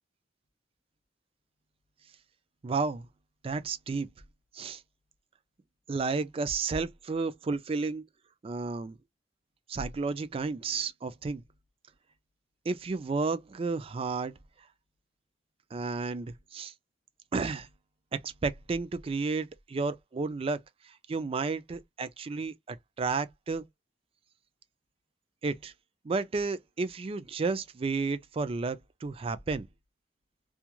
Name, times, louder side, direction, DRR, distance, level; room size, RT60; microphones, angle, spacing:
voice 1, 2.6-3.1 3.4-4.1 4.5-4.8 5.9-8.1 8.4-9.0 9.7-11.4 12.7-14.3 15.7-16.7 17.3-17.7 18.1-20.6 20.9-23.6 25.4-25.7 26.0-29.7, right 4 dB, 35° right, 0.4 m, -32 dB
3.0 x 2.3 x 2.2 m
head